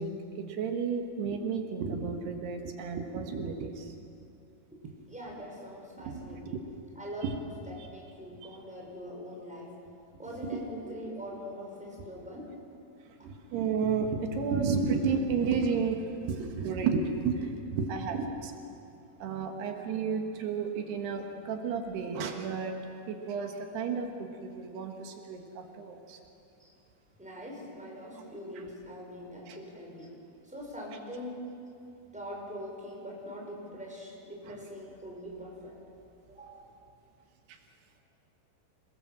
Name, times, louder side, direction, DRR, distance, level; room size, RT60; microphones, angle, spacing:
voice 1, 0.0-3.9 6.1-6.4 7.2-7.3 10.9-11.0 13.2-18.5 19.2-22.8 23.1-26.2 29.5-29.6, right 5 dB, 85° right, 4 dB, 3.7 m, -32 dB
voice 2, 5.1-6.6 7.0-9.7 10.2-12.5 26.6-26.7 27.2-30.1 30.4-31.4 32.1-35.8 36.3-36.7, equal, ahead, -3 dB, 5.3 m, -43 dB
26.5 x 20.5 x 7.6 m, 2.6 s
omnidirectional pair, 4.6 m